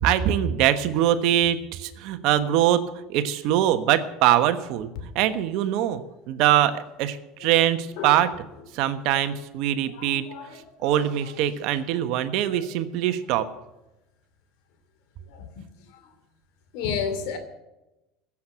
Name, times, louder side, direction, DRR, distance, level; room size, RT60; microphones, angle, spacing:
voice 1, 0.0-4.9 5.1-6.0 6.3-8.3 8.7-10.3 10.5-13.4, right 11 dB, 65° right, 10 dB, 1.2 m, -23 dB
voice 2, 10.0-10.5 15.3-15.5 16.7-17.4, left 6 dB, 70° left, 7 dB, 2.7 m, -30 dB
15.5 x 7.4 x 9.0 m, 0.97 s
hypercardioid pair, 90°, 0 cm